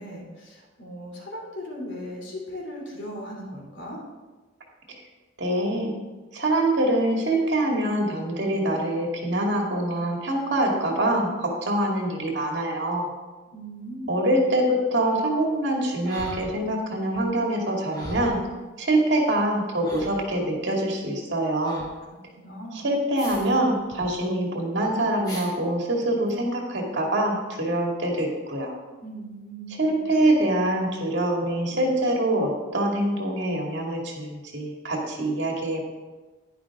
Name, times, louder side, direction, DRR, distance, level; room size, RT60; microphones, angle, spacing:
voice 1, 0.0-4.0 13.5-14.1 22.1-22.8 29.0-30.0, equal, 65° left, -2 dB, 3.1 m, -38 dB
voice 2, 5.4-5.9 6.3-13.1 14.1-18.4 18.8-21.9 22.7-28.7 29.7-35.8, right 1 dB, 60° right, 0 dB, 2.2 m, -24 dB
sound 1, 16.0-16.9 17.1-17.3 17.9-18.5 19.4-19.5 19.8-20.4 21.6-21.9 23.2-23.5 23.8-24.1 25.2-25.5 26.3-26.4, equal, 20° left, 1.7 m, -39 dB
11.0 x 10.5 x 3.7 m, 1.3 s
head